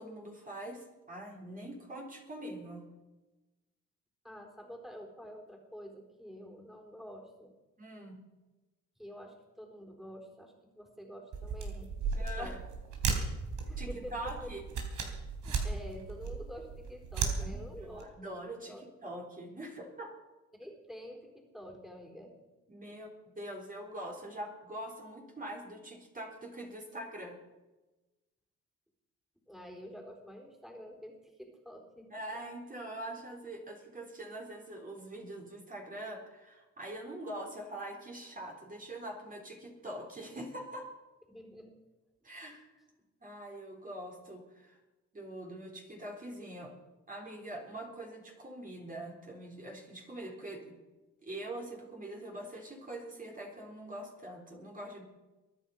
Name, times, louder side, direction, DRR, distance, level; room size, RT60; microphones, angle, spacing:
voice 1, 0.0-2.8 7.8-8.2 12.1-12.6 13.8-14.6 17.4-20.1 22.7-27.4 32.1-40.9 42.2-42.7 43.2-44.8 45.1-46.7 47.1-50.6 51.2-55.0, right 1 dB, 30° right, 0 dB, 3.9 m, -43 dB
voice 2, 4.2-7.5 9.0-12.1 12.4-12.6 13.6-14.5 15.4-18.1 18.7-18.8 20.5-22.3 29.5-32.1 41.3-41.7, equal, ahead, 1 dB, 4.1 m, -48 dB
sound 1, 11.3-18.0, right 5 dB, 75° right, 3.8 m, -36 dB
22.5 x 10.0 x 5.4 m, 1.1 s
cardioid pair, 90°, 30 cm